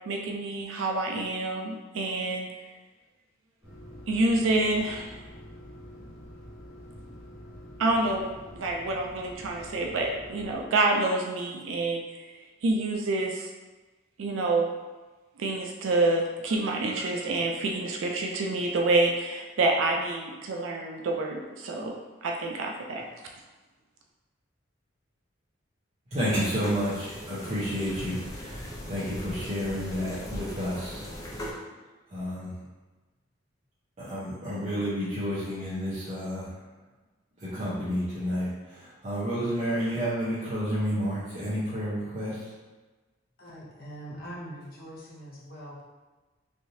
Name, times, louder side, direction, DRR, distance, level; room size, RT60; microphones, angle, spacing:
voice 1, 0.1-2.5 4.1-5.1 7.8-8.2 8.5-12.2 12.6-13.5 14.2-14.7 15.4-22.0 22.2-23.0, right 2 dB, 75° right, 1 dB, 0.4 m, -27 dB
sound 1, 3.6-10.6, equal, 15° right, 1.2 m, -46 dB
voice 2, 26.1-31.1 32.1-32.5 34.0-36.5 37.4-42.5, equal, 35° right, -12 dB, 0.8 m, -30 dB
sound 2, 26.3-31.5, equal, 20° left, 0.5 m, -39 dB
voice 3, 43.4-45.8, equal, 50° left, -5 dB, 0.8 m, -42 dB
3.3 x 2.6 x 2.7 m, 1.2 s
head